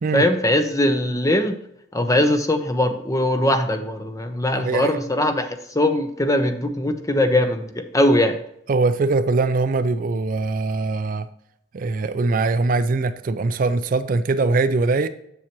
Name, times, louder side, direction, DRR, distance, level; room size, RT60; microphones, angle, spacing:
voice 1, 0.1-1.6 1.9-8.4, left 1 dB, 15° left, 0.6 m, -21 dB
voice 2, 4.5-5.0 8.7-11.3 11.7-15.1, right 3 dB, 45° right, 0.4 m, -22 dB
7.2 x 7.1 x 3.0 m
head